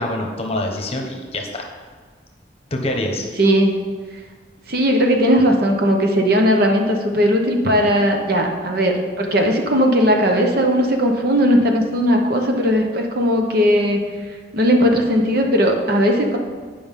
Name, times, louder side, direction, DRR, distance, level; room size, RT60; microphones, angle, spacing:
voice 1, 0.0-1.7 2.7-3.3, left 1 dB, 35° left, 2 dB, 1.0 m, -25 dB
voice 2, 3.4-3.7 4.7-14.0 14.5-16.4, equal, 55° right, 2 dB, 1.0 m, -17 dB
9.5 x 5.1 x 5.3 m, 1.5 s
head